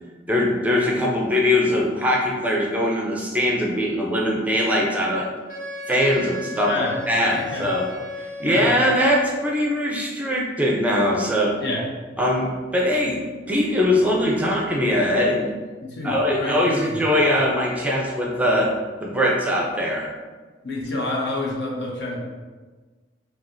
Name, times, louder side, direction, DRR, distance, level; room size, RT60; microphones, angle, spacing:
voice 1, 0.3-5.3 5.9-7.9 8.4-11.5 12.2-13.2 13.5-15.5 16.0-18.7 19.0-20.1, left 1 dB, 10° right, -2 dB, 0.5 m, -21 dB
Wind instrument woodwind instrument, 5.5-9.0, left 1 dB, 50° left, 0.6 m, -34 dB
voice 2, 6.7-7.0 7.3-7.7 8.4-8.7 11.6-11.8 15.8-17.0 20.6-22.2, left 2 dB, 70° left, -3 dB, 0.9 m, -28 dB
5.8 x 2.4 x 2.6 m, 1.3 s
head